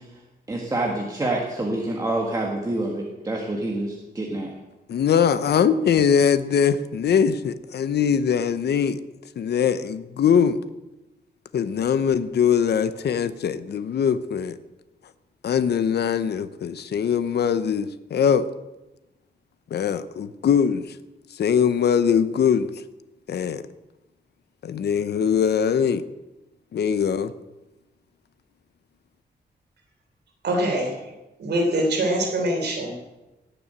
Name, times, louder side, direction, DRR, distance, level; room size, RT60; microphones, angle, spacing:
voice 1, 0.5-4.5, right 2 dB, 20° right, 1.8 m, -27 dB
voice 2, 4.9-9.0 9.4-10.6 11.5-14.6 15.4-18.5 19.7-21.0 21.3-22.7 23.3-23.6 24.6-26.0 26.7-27.3, left 7 dB, 70° left, 0.8 m, -22 dB
voice 3, 30.4-31.0 31.4-32.9, right 1 dB, 70° right, 3.8 m, -23 dB
18.0 x 7.0 x 8.9 m
wide cardioid pair, 155°, 18 cm